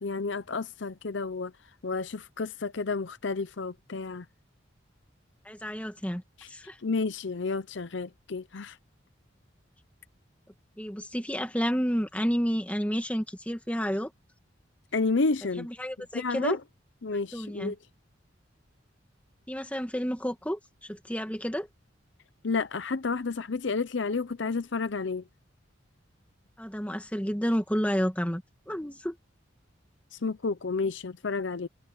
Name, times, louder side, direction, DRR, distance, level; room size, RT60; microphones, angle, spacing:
voice 1, 0.0-1.5 1.8-4.3 6.4-6.5 6.8-8.8 14.9-15.7 16.0-16.6 17.0-17.8 22.4-25.2 30.1-31.7, left 4 dB, 70° left, 0.7 m, -31 dB
voice 2, 5.4-6.2 6.5-6.8 10.8-14.1 15.6-16.6 17.3-17.7 19.5-21.7 26.6-29.2, equal, 5° left, 2.2 m, -30 dB
head